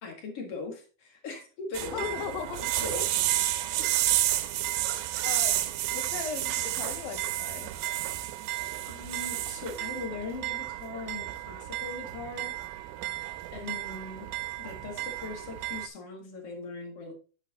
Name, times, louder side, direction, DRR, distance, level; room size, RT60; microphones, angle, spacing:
voice 1, 0.0-3.1 3.8-3.9 8.8-12.6 13.5-17.1, left 3 dB, 45° left, 2.3 m, -40 dB
sound 1, 1.7-15.9, right 14 dB, 90° right, 2.6 m, -31 dB
voice 2, 1.9-2.6 5.0-7.7, left 8 dB, 70° left, 2.7 m, -38 dB
10.0 x 6.0 x 2.9 m
omnidirectional pair, 4.5 m